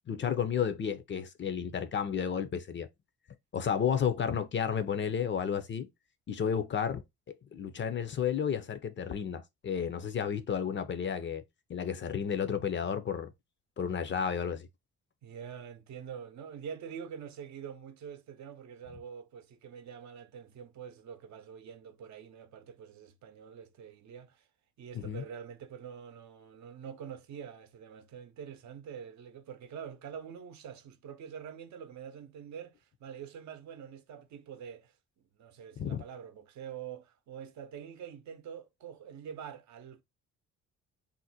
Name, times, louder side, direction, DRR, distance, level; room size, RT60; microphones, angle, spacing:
voice 1, 0.1-2.9 3.5-5.9 6.3-7.0 7.5-11.4 11.7-13.3 13.8-14.7 24.9-25.2 35.8-36.0, left 7 dB, 40° left, 0.5 m, -32 dB
voice 2, 15.2-24.5 24.8-34.9 35.4-40.0, right 8 dB, 65° right, 0.7 m, -45 dB
2.6 x 2.1 x 4.0 m
cardioid pair, 90°, 30 cm